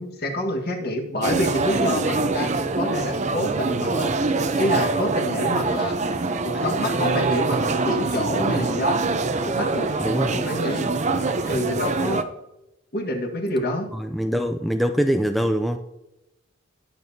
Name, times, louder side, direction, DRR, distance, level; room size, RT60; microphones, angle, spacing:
voice 1, 0.0-4.1 4.6-6.0 6.4-9.0 9.5-9.9 10.3-10.9 11.4-12.2 12.9-13.9, left 1 dB, 50° left, 3 dB, 1.6 m, -27 dB
sound 1, 1.2-12.2, right 3 dB, 35° right, 0.7 m, -24 dB
voice 2, 10.0-10.4 13.9-15.8, equal, ahead, 6 dB, 0.4 m, -23 dB
19.5 x 6.9 x 2.8 m, 0.92 s
head